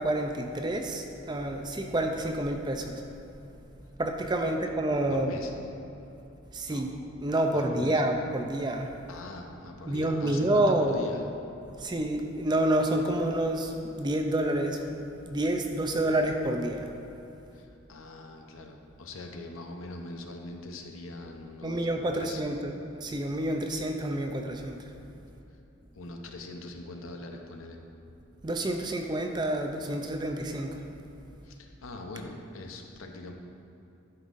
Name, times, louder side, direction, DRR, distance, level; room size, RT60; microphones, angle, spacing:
voice 1, 0.0-3.0 4.0-5.4 6.5-6.9 7.2-8.9 9.9-11.0 11.8-16.9 21.6-22.7 23.0-24.8 28.4-30.8, right 1 dB, 20° right, 4 dB, 0.4 m, -28 dB
voice 2, 5.1-5.5 6.7-6.9 7.5-8.0 9.1-11.3 17.5-21.9 22.1-22.4 25.9-27.8 31.4-33.3, left 2 dB, 80° left, 3 dB, 0.7 m, -42 dB
11.5 x 5.4 x 2.5 m, 2.9 s
head